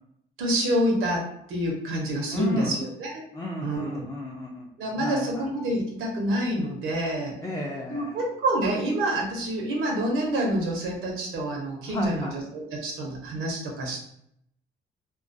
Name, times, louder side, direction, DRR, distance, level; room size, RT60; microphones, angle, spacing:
voice 1, 0.4-3.2 3.6-4.0 4.8-7.3 7.9-14.0, right 1 dB, 85° right, -1 dB, 0.7 m, -27 dB
voice 2, 2.3-2.8 3.3-4.7 5.0-5.5 7.4-8.2 11.8-12.3, left 1 dB, 15° left, -2 dB, 0.4 m, -32 dB
2.2 x 2.2 x 2.5 m, 0.73 s
cardioid pair, 90°, 20 cm